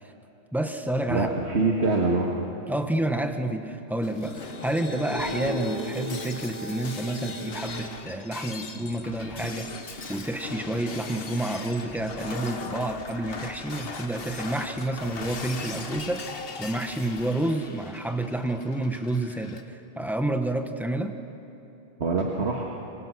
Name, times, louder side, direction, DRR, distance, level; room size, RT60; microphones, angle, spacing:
voice 1, 0.5-1.3 2.7-21.1, right 1 dB, ahead, 6 dB, 1.1 m, -29 dB
voice 2, 1.1-2.3 22.0-22.6, right 3 dB, 70° right, 0 dB, 1.8 m, -24 dB
Shatter, 4.0-19.6, left 4 dB, 55° left, 1.3 m, -40 dB
sound 1, 4.0-7.9 8.5-10.5, equal, 35° left, 1.6 m, -37 dB
25.0 x 24.0 x 6.4 m, 2.9 s
omnidirectional pair, 1.2 m